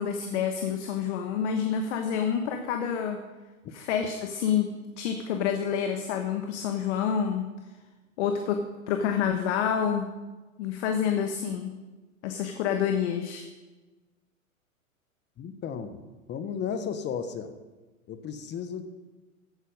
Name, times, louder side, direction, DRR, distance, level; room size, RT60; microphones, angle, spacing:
voice 1, 0.0-3.2 3.7-7.5 8.2-10.1 10.6-11.8 12.2-13.4, left 7 dB, 55° left, 5 dB, 1.4 m, -28 dB
voice 2, 15.4-16.0 16.3-17.5 18.1-18.8, left 7 dB, 25° left, 10 dB, 1.2 m, -34 dB
15.5 x 8.7 x 5.3 m, 1.2 s
hypercardioid pair, 110°, 42 cm